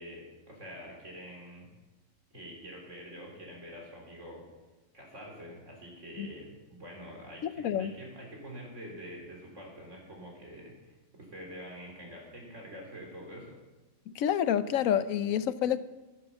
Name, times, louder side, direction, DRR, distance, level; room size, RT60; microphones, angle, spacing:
voice 1, 0.0-1.7 2.3-4.4 4.9-13.6 15.1-15.2, equal, 65° right, 4.1 m, -46 dB
voice 2, 7.4-7.9 14.1-15.8, left 9 dB, 90° left, 1.1 m, -28 dB
11.5 x 10.5 x 6.9 m
omnidirectional pair, 1.4 m